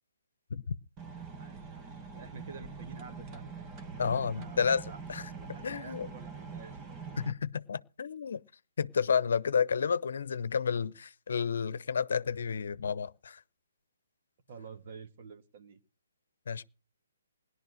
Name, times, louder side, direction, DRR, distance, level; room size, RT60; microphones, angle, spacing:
sound 1, 1.0-7.3, right 5 dB, 25° right, 1.5 m, -44 dB
voice 1, 1.4-7.0 14.5-15.8, right 5 dB, 45° right, 1.8 m, -50 dB
voice 2, 4.0-5.3 5.6-6.1 7.2-8.4 8.8-13.4 16.5-16.6, left 6 dB, 65° left, 0.9 m, -31 dB
18.0 x 11.5 x 6.4 m
hypercardioid pair, 150°, 0 cm